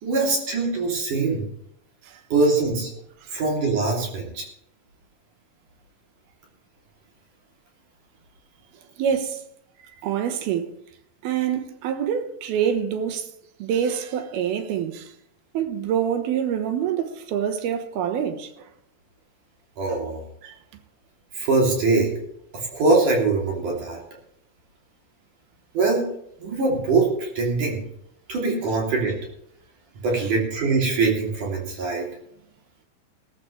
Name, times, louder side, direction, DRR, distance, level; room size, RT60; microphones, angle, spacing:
voice 1, 0.0-1.4 2.3-2.9 3.3-4.4 19.8-20.2 21.3-22.1 22.5-24.0 25.7-26.0 26.4-27.8 28.3-29.2 30.0-32.1, right 3 dB, 55° right, 4.4 m, -22 dB
voice 2, 9.0-9.4 10.0-10.8 11.2-13.3 13.6-15.1 15.5-18.7 20.4-20.6, right 8 dB, 85° right, 3.1 m, -26 dB
17.0 x 14.0 x 3.2 m
omnidirectional pair, 4.3 m